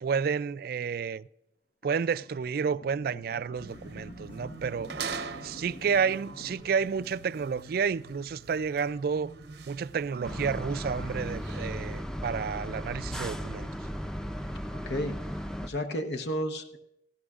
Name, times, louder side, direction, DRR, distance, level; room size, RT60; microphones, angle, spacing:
voice 1, 0.0-1.3 1.8-4.9 5.4-9.3 9.7-13.7, right 6 dB, 55° right, 0.3 m, -30 dB
sound 1, 1.8-6.6, left 2 dB, 50° left, 0.6 m, -48 dB
sound 2, 3.5-12.0, right 5 dB, 75° right, 0.8 m, -43 dB
sound 3, 10.2-15.7, equal, 5° left, 0.5 m, -36 dB
voice 2, 14.7-15.3 15.6-16.8, equal, 75° left, 1.0 m, -32 dB
17.5 x 14.0 x 2.4 m
head